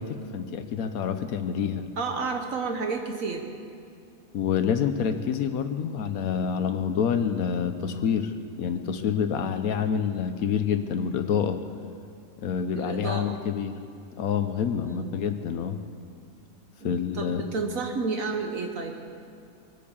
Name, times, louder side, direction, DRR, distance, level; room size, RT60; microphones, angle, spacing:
voice 1, 0.0-1.9 4.3-11.6 12.4-13.8 14.2-15.8 16.8-17.4, left 7 dB, 80° left, 8 dB, 1.2 m, -27 dB
voice 2, 2.0-3.4 12.7-13.4 14.7-15.2 16.8-19.0, right 4 dB, 70° right, 3 dB, 1.4 m, -31 dB
22.0 x 8.5 x 7.1 m, 2.5 s
omnidirectional pair, 1.5 m